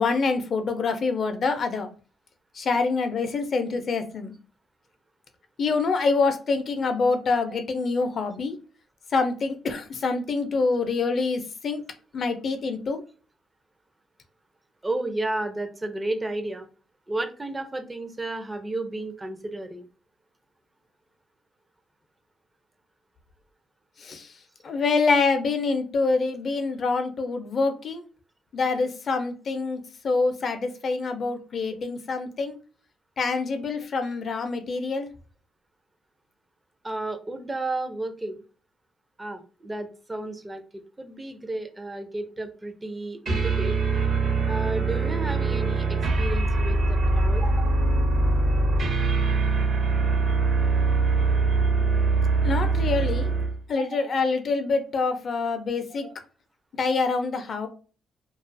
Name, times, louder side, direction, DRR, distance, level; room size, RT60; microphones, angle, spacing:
voice 1, 0.0-1.9 2.6-4.3 5.6-8.5 9.1-11.8 12.1-13.0 24.0-24.3 24.6-28.0 28.5-32.6 33.2-35.1 52.4-53.3 53.7-56.1 56.8-57.7, left 4 dB, 50° left, 7 dB, 0.5 m, -26 dB
voice 2, 14.8-16.7 17.1-19.9 27.0-27.1 30.6-30.7 36.8-38.4 39.2-43.7 44.5-47.8 53.8-54.0 55.9-56.1, right 2 dB, 15° right, 6 dB, 0.5 m, -33 dB
sound 1, 43.3-53.6, right 3 dB, 60° right, 0.8 m, -23 dB
2.4 x 2.3 x 2.5 m, 0.36 s
cardioid pair, 90°, 0 cm